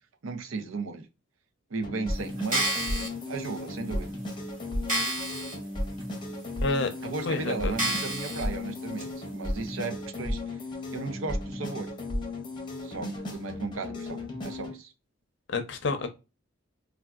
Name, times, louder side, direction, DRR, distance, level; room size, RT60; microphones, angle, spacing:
voice 1, 0.2-1.1 1.7-4.1 7.0-10.4 10.9-11.9 12.8-14.9, right 3 dB, 80° right, 0.6 m, -35 dB
sound 1, 1.8-14.8, left 1 dB, 25° left, 0.7 m, -35 dB
sound 2, 2.4-3.1 3.8-3.9 4.3-4.4 4.9-5.6 6.0-6.1 6.8-6.9 7.8-8.4 9.0-9.1, right 1 dB, 40° right, 1.6 m, -29 dB
voice 2, 6.6-6.9 7.3-7.7 15.5-16.1, left 3 dB, 60° left, 0.6 m, -28 dB
3.5 x 2.3 x 2.3 m
head